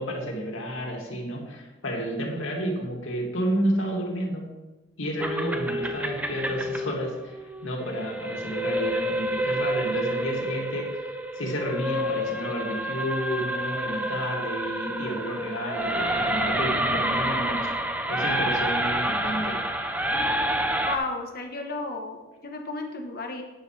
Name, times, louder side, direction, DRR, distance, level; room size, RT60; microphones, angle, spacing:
voice 1, 0.0-4.4 5.0-7.4 7.6-11.1 11.4-17.7 18.1-19.6, equal, 85° left, 0 dB, 2.4 m, -31 dB
sound 1, 5.2-21.0, right 1 dB, 10° right, 0.7 m, -28 dB
voice 2, 20.8-23.4, left 2 dB, 50° left, 3 dB, 1.2 m, -33 dB
11.5 x 9.7 x 3.4 m, 1.1 s
head